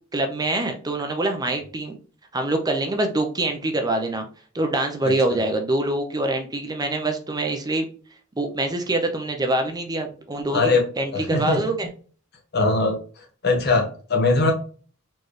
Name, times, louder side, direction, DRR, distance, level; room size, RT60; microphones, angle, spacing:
voice 1, 0.1-2.0 2.3-4.3 4.5-7.8 8.4-11.9, right 2 dB, 20° right, 5 dB, 0.6 m, -25 dB
voice 2, 11.1-11.6 12.5-14.5, left 3 dB, 50° left, 2 dB, 1.1 m, -21 dB
4.5 x 3.2 x 3.1 m, 0.40 s
head